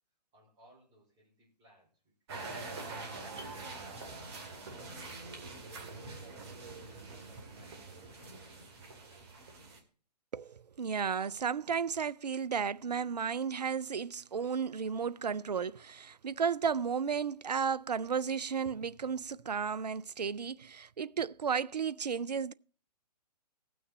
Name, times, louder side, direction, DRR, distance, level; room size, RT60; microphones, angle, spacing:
voice 1, 0.3-2.6 3.2-9.3, right 1 dB, 20° right, 4.7 m, -64 dB
sound 1, 2.3-9.8, right 3 dB, 40° right, 2.1 m, -45 dB
voice 2, 10.3-22.5, right 6 dB, 75° right, 0.4 m, -33 dB
17.5 x 6.3 x 4.0 m
figure-of-eight pair, 130°, 21 cm